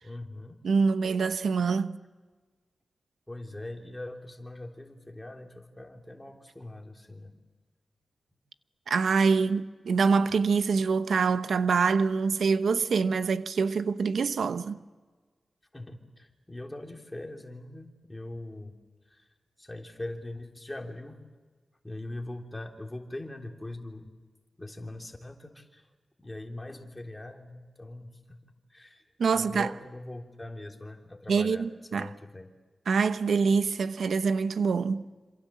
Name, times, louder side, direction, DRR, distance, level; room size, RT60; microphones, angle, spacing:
voice 1, 0.0-0.6 3.3-7.3 15.7-18.7 19.1-19.2 19.6-21.2 21.8-24.1 24.6-25.9 26.2-28.4 28.7-29.0 29.3-32.5, left 1 dB, 15° left, 3.4 m, -41 dB
voice 2, 0.6-2.0 8.9-14.8 29.2-29.7 31.3-32.1 32.9-35.0, right 5 dB, 85° right, 0.9 m, -25 dB
28.0 x 26.5 x 7.5 m
wide cardioid pair, 110°, 0 cm